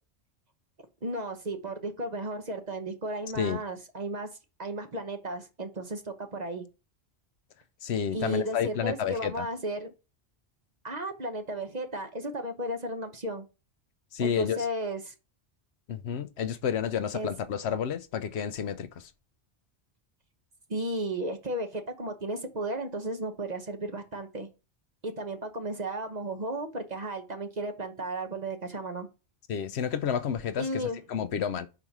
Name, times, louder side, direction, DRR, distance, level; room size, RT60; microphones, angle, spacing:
voice 1, 1.0-4.3 4.6-6.6 8.1-9.9 10.8-13.4 14.2-15.1 17.1-17.3 20.7-24.5 25.0-29.1 30.6-31.0, right 1 dB, 40° right, 1.1 m, -34 dB
voice 2, 7.8-9.5 14.1-14.7 15.9-19.0 29.5-31.7, left 8 dB, 70° left, 0.9 m, -30 dB
5.2 x 4.8 x 5.9 m
omnidirectional pair, 1.1 m